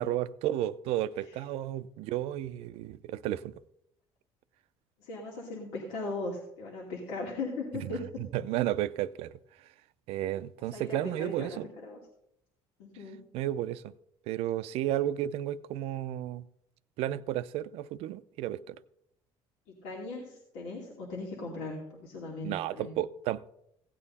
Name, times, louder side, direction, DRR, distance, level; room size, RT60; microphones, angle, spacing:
voice 1, 0.0-3.5 7.7-9.3 10.1-11.6 13.3-13.9 14.3-16.4 17.0-18.8 22.4-23.5, right 13 dB, 75° right, 0.5 m, -33 dB
voice 2, 5.0-8.0 10.7-12.0 12.8-13.3 19.7-22.9, left 3 dB, 85° left, 2.5 m, -38 dB
16.0 x 9.0 x 4.1 m
cardioid pair, 115°, 10 cm